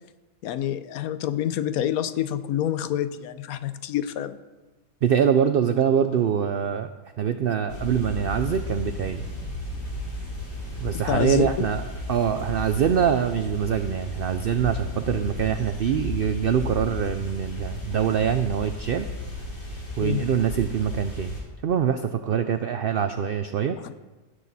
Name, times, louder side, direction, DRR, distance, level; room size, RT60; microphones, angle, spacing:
voice 1, 0.4-4.4 10.9-11.7 20.0-20.3 23.8-23.9, left 11 dB, 80° left, 12 dB, 1.1 m, -27 dB
voice 2, 5.0-6.9 7.2-9.2 10.8-19.1 20.0-21.4 21.6-23.8, right 8 dB, 85° right, 9 dB, 0.5 m, -24 dB
sound 1, 7.7-21.4, left 2 dB, 50° left, 3.2 m, -34 dB
16.5 x 6.5 x 4.1 m, 1.2 s
omnidirectional pair, 1.5 m